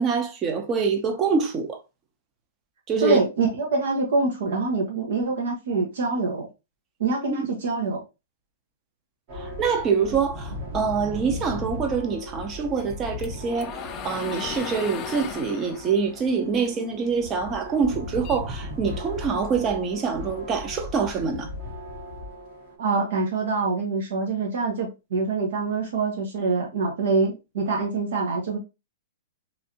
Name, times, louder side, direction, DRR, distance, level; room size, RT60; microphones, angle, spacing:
voice 1, 0.0-1.8 2.9-3.2 7.3-7.5 9.3-13.8 14.0-21.5, right 5 dB, 25° right, 0.7 m, -25 dB
voice 2, 3.0-6.5 7.0-8.0 22.8-28.6, right 3 dB, 70° right, 0.9 m, -25 dB
sound 1, 9.3-22.8, left 1 dB, 45° right, 1.3 m, -37 dB
sound 2, 12.8-17.3 17.7-19.2, left 9 dB, 30° left, 0.3 m, -37 dB
3.1 x 2.6 x 2.8 m
hypercardioid pair, 145°, 0 cm